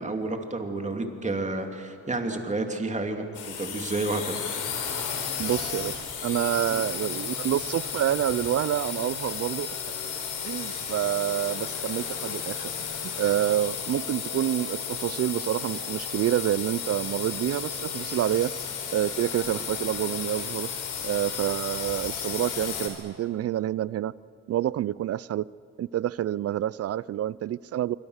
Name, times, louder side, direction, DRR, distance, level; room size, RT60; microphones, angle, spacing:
voice 1, 0.0-4.4 6.7-6.8, right 2 dB, 25° right, 4 dB, 2.9 m, -30 dB
sound 1, 3.3-22.9, left 7 dB, 80° left, 4.3 m, -33 dB
voice 2, 5.4-9.7 10.4-12.7 13.2-18.5 18.9-20.7 21.0-24.1 24.5-25.5 25.8-28.0, right 12 dB, 55° right, 21 dB, 0.5 m, -28 dB
26.5 x 24.0 x 6.5 m, 2.5 s
cardioid pair, 90°, 30 cm